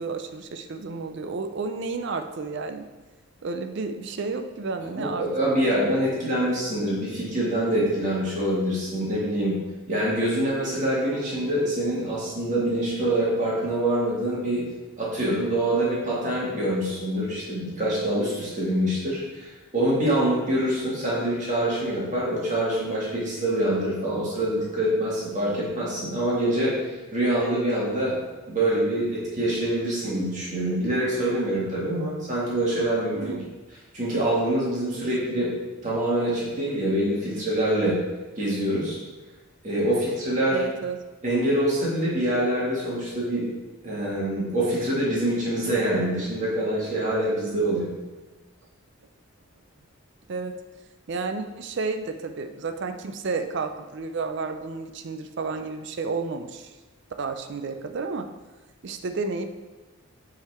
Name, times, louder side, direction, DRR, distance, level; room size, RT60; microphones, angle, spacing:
voice 1, 0.0-2.9 3.4-5.7 5.9-6.0 33.1-33.5 40.5-41.0 50.3-50.5 51.1-56.7 57.2-58.3 58.8-59.5, right 4 dB, 50° right, 7 dB, 0.4 m, -31 dB
voice 2, 5.0-9.6 9.9-14.6 15.0-26.7 27.1-28.1 28.5-33.2 33.9-35.5 35.8-38.0 38.4-39.0 39.6-40.6 41.2-43.4 43.8-47.9, right 1 dB, 35° right, -7 dB, 1.9 m, -25 dB
5.8 x 3.9 x 4.2 m, 1.2 s
head